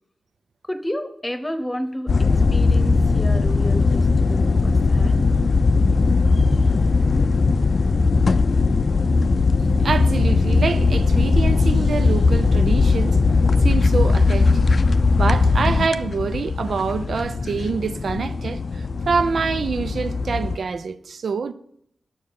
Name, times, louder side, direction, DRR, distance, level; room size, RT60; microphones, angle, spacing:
voice 1, 0.6-5.2, equal, 15° left, 1.0 m, -31 dB
sound 1, 2.1-20.6, left 4 dB, 60° left, 0.4 m, -19 dB
voice 2, 9.6-13.2 13.6-14.6 15.1-21.5, right 5 dB, 75° right, 0.5 m, -26 dB
9.7 x 7.0 x 6.5 m
wide cardioid pair, 80°, 0 cm